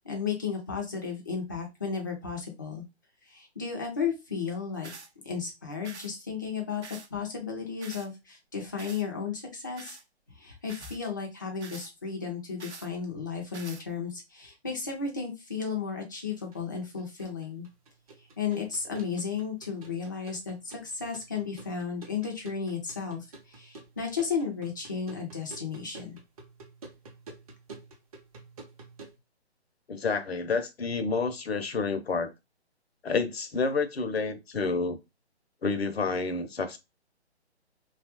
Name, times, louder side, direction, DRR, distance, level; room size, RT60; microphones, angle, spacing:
voice 1, 0.0-2.8 3.3-4.9 5.2-6.8 7.1-10.0 10.4-17.7 18.4-26.2, left 6 dB, 20° left, 0.4 m, -34 dB
sound 1, 4.8-5.1 5.8-6.1 6.8-7.1 7.8-8.1 8.8-9.0 9.8-10.0 10.7-11.0 11.6-11.9 12.6-12.9 13.5-13.8, right 4 dB, 80° right, 0.7 m, -45 dB
sound 2, 16.3-29.2, right 3 dB, 35° right, 0.7 m, -50 dB
voice 2, 29.9-32.3 33.0-35.0 35.6-36.8, left 4 dB, 65° left, 0.7 m, -29 dB
2.9 x 2.4 x 2.8 m
figure-of-eight pair, 135°, 33 cm